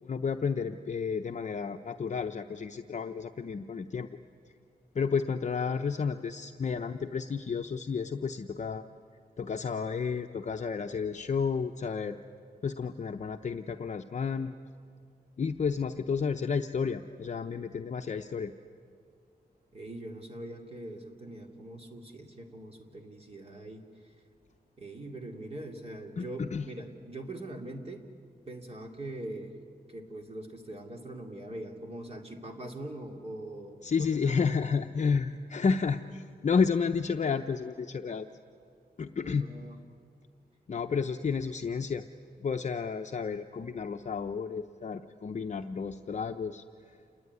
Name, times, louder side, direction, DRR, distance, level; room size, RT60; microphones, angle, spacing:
voice 1, 0.0-4.1 4.9-8.8 9.4-12.2 12.6-14.6 15.4-18.5 26.2-26.7 33.8-38.3 39.0-39.5 40.7-42.0 42.4-46.6, left 5 dB, 45° left, 5 dB, 0.7 m, -31 dB
voice 2, 19.7-24.1 24.8-28.0 28.5-29.6 29.9-34.6 39.2-39.8 40.9-41.1, right 1 dB, 35° right, 3 dB, 2.7 m, -42 dB
28.5 x 21.0 x 9.5 m, 2.3 s
wide cardioid pair, 165°, 17 cm